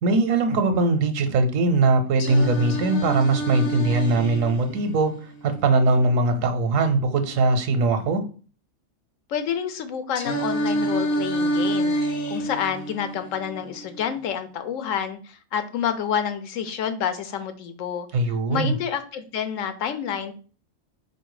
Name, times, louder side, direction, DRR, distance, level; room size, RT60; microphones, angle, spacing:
voice 1, 0.0-5.1 5.4-8.2 18.1-18.7, right 3 dB, 85° right, 1.0 m, -21 dB
Singing, 2.2-6.2 10.2-14.2, right 1 dB, 60° left, 1.0 m, -28 dB
voice 2, 9.3-11.9 12.3-18.1 18.5-20.3, left 8 dB, 85° left, 1.0 m, -28 dB
4.2 x 2.7 x 4.7 m
omnidirectional pair, 1.3 m